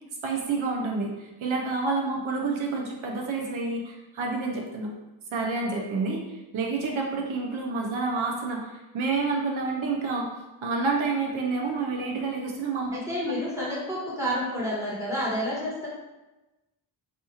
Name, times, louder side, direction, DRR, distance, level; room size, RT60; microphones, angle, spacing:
voice 1, 0.2-4.9 5.3-10.3 10.6-12.9, right 3 dB, 80° right, -1 dB, 0.7 m, -29 dB
voice 2, 12.9-15.9, equal, 5° right, -7 dB, 1.1 m, -29 dB
4.2 x 2.4 x 2.8 m, 1.1 s
wide cardioid pair, 135°, 48 cm